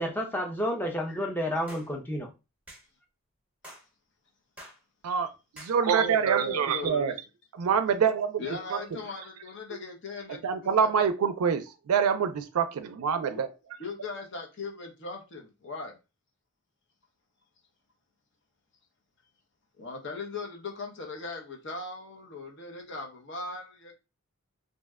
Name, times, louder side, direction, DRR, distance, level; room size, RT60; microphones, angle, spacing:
voice 1, 0.0-2.3, equal, 10° left, 0.5 m, -30 dB
sound 1, 1.7-1.9 2.7-2.9 3.6-3.9 4.6-4.8 5.6-5.8, equal, 5° right, 0.9 m, -47 dB
voice 2, 5.0-7.1 7.6-8.8 10.4-13.5, right 6 dB, 85° right, 0.4 m, -26 dB
voice 3, 6.0-7.2 8.4-11.1 13.2-13.4 13.8-16.0 19.8-23.9, left 3 dB, 55° left, 0.7 m, -39 dB
2.7 x 2.1 x 3.4 m
head